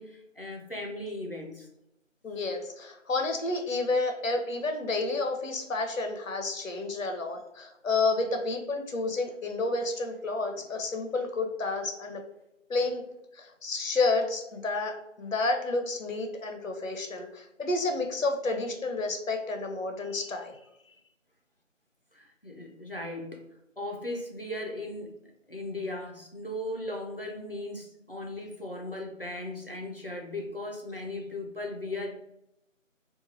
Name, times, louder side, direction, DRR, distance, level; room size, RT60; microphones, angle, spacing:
voice 1, 0.0-1.7 22.1-23.5 23.8-25.2 25.5-32.1, left 1 dB, 50° left, 1 dB, 0.4 m, -37 dB
voice 2, 2.2-12.2 12.7-13.0 13.3-20.6, left 3 dB, 85° left, 4 dB, 0.7 m, -30 dB
2.9 x 2.3 x 2.6 m, 0.86 s
figure-of-eight pair, 180°, 38 cm